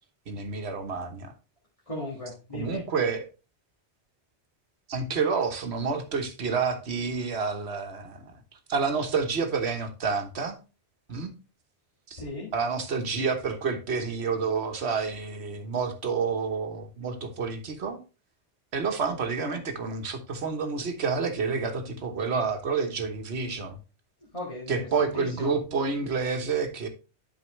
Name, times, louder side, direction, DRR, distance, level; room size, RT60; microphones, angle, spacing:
voice 1, 0.3-1.3 2.5-3.3 4.9-8.4 8.7-10.6 11.1-11.3 12.1-12.2 12.5-18.0 18.7-23.8 24.7-26.9, right 5 dB, 70° right, 7 dB, 1.3 m, -29 dB
voice 2, 1.9-2.8 12.1-12.5 24.3-25.5, left 1 dB, 30° left, -7 dB, 1.9 m, -37 dB
11.0 x 4.7 x 3.1 m, 0.32 s
omnidirectional pair, 1.2 m